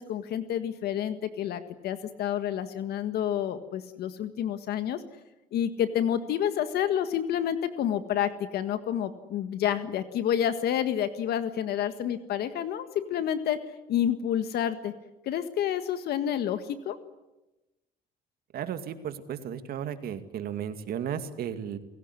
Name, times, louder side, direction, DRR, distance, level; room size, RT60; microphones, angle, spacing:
voice 1, 0.0-5.0 5.5-13.6 13.9-14.9 15.3-17.0, left 10 dB, 70° left, 10 dB, 1.7 m, -29 dB
voice 2, 18.5-21.8, right 9 dB, 65° right, 9 dB, 2.3 m, -34 dB
29.5 x 17.0 x 9.8 m, 1.0 s
cardioid pair, 110°, 17 cm